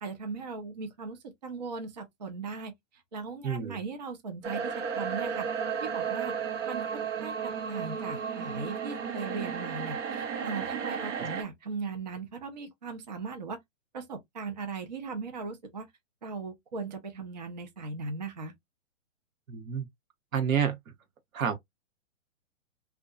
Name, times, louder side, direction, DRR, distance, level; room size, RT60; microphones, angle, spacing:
voice 1, 0.0-5.5 5.8-6.3 6.6-13.6 13.9-15.9 16.2-18.5, right 4 dB, 35° right, 0.4 m, -38 dB
voice 2, 3.4-3.8 11.2-11.3 19.5-19.9 20.3-20.8 21.3-21.5, right 7 dB, 90° right, 1.0 m, -28 dB
sound 1, 4.4-11.4, right 7 dB, 65° right, 0.7 m, -33 dB
2.6 x 2.2 x 2.2 m
hypercardioid pair, 170°, 40 cm